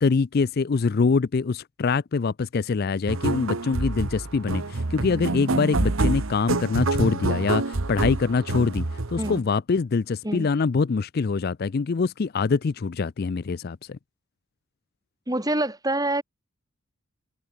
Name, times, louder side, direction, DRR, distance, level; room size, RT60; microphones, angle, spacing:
voice 1, 0.0-14.0, left 4 dB, 45° left, 0.4 m, -24 dB
sound 1, 3.1-9.4, right 2 dB, 70° right, 1.2 m, -27 dB
voice 2, 15.3-16.2, right 1 dB, 15° right, 3.5 m, -26 dB
head